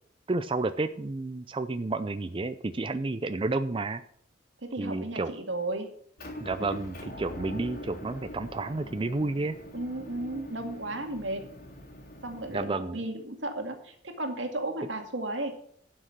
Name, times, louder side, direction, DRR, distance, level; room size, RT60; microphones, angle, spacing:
voice 1, 0.3-4.0 4.8-5.3 6.4-9.6 12.5-13.0, right 3 dB, 30° right, 11 dB, 0.5 m, -31 dB
voice 2, 4.6-5.9 9.7-11.4 12.2-15.5, right 2 dB, 85° right, 4 dB, 2.2 m, -34 dB
Motor vehicle (road) / Engine, 6.2-12.6, left 1 dB, 55° left, 3.4 m, -43 dB
11.5 x 6.5 x 7.6 m, 0.63 s
head